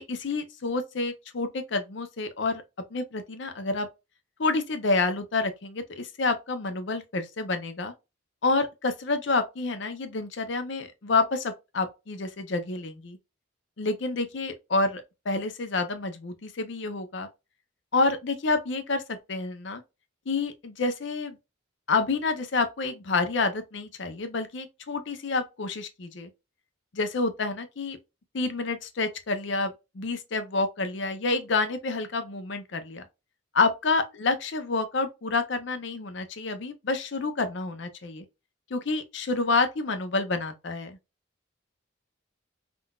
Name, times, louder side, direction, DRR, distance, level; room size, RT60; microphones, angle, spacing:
voice 1, 0.0-2.6 2.9-3.9 4.4-7.9 8.4-13.2 13.8-17.3 17.9-19.8 20.3-21.4 21.9-26.3 26.9-28.0 28.3-33.0 33.5-38.2 38.7-41.0, left 3 dB, 60° left, 0.5 m, -28 dB
3.7 x 2.4 x 2.3 m
head